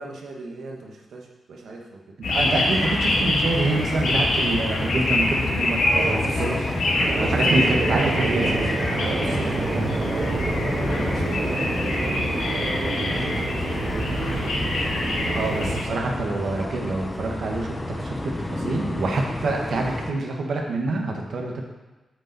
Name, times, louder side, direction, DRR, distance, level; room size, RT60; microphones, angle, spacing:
voice 1, 0.0-2.2 5.9-6.6 7.1-10.6 11.0-14.6, right 3 dB, 80° right, 0 dB, 1.3 m, -36 dB
sound 1, 2.2-15.8, left 2 dB, 80° left, 1.7 m, -25 dB
voice 2, 2.2-6.6 7.2-8.5 15.3-21.6, right 2 dB, 65° right, 1 dB, 1.4 m, -26 dB
sound 2, 2.3-20.1, left 1 dB, 10° left, 0.6 m, -31 dB
sound 3, 7.0-15.8, right 5 dB, 45° right, 0.4 m, -29 dB
8.9 x 6.7 x 4.1 m, 1.1 s
wide cardioid pair, 170°, 0 cm